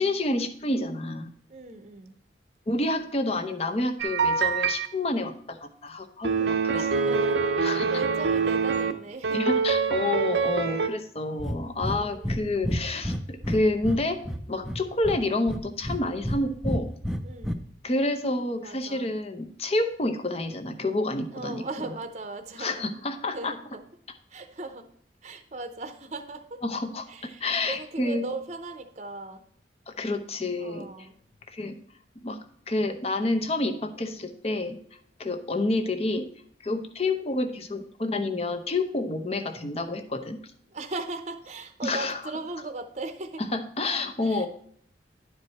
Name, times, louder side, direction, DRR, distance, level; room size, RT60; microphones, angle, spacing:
voice 1, 0.0-1.3 2.7-7.0 7.6-7.8 9.3-14.2 14.5-16.9 17.8-21.9 22.6-23.5 26.6-28.3 29.9-30.9 31.5-31.8 32.2-32.4 32.7-34.8 35.2-36.3 36.6-40.5 41.8-42.2 43.5-44.5, left 2 dB, 35° left, 7 dB, 0.7 m, -29 dB
voice 2, 1.5-2.2 6.6-9.5 10.6-10.9 11.8-12.5 17.2-17.7 18.6-19.1 21.3-22.9 23.3-23.8 24.3-24.9 25.2-26.6 27.1-29.4 30.6-31.2 34.0-34.3 35.2-35.5 40.7-43.4 44.2-44.5, right 3 dB, 35° right, 7 dB, 0.7 m, -38 dB
sound 1, 4.0-4.9 6.2-8.9 9.2-10.9, right 5 dB, 75° right, 0.7 m, -25 dB
Breathing, 11.4-11.6 11.8-12.0 12.2-12.4 12.6-14.0 14.2-15.2 15.5-16.4 16.6-17.5, equal, ahead, 0.5 m, -29 dB
10.5 x 4.7 x 4.2 m, 0.63 s
head